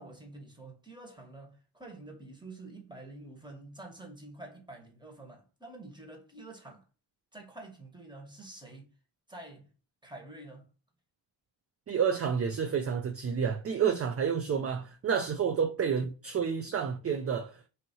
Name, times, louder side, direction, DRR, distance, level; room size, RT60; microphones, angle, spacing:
voice 1, 0.0-6.9 7.3-8.9 9.3-9.7 10.0-10.7 14.4-14.7, right 2 dB, 10° right, 1.2 m, -48 dB
voice 2, 11.9-17.6, right 7 dB, 35° right, 0.4 m, -29 dB
2.7 x 2.7 x 2.7 m
cardioid pair, 60°, 44 cm